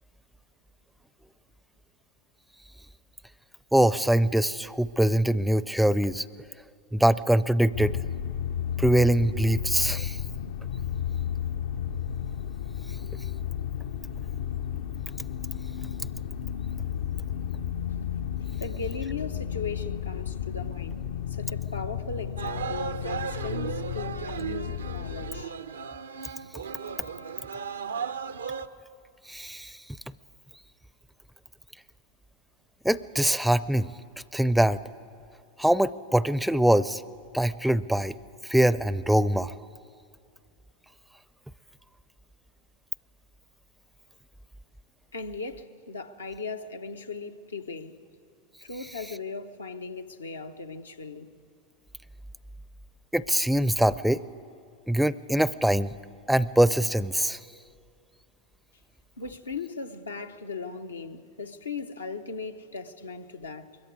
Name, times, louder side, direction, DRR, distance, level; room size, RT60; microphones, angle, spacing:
voice 1, 3.7-6.2 6.9-8.0 8.8-10.2 29.3-29.7 32.8-33.9 34.3-34.8 35.6-37.0 37.3-38.1 38.5-39.5 53.1-54.2 54.9-55.9 56.3-57.4, right 1 dB, ahead, 0.5 m, -23 dB
sound 1, 7.7-25.4, left 9 dB, 70° left, 0.6 m, -33 dB
voice 2, 18.6-25.5 45.1-48.0 48.6-51.3 59.2-63.8, left 4 dB, 90° left, 0.9 m, -38 dB
sound 2, 22.4-28.7, right 6 dB, 85° right, 0.6 m, -35 dB
22.0 x 14.5 x 9.6 m
hypercardioid pair, 90°, 0 cm